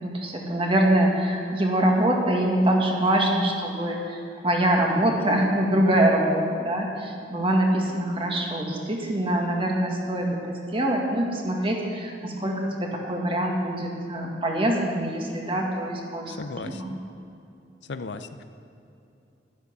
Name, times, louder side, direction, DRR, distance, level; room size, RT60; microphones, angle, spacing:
voice 1, 0.0-16.4 16.6-16.9, right 1 dB, 30° right, 0 dB, 1.8 m, -24 dB
voice 2, 16.3-16.8 17.9-18.4, left 3 dB, 70° left, 10 dB, 0.6 m, -35 dB
11.5 x 11.0 x 6.8 m, 2.8 s
head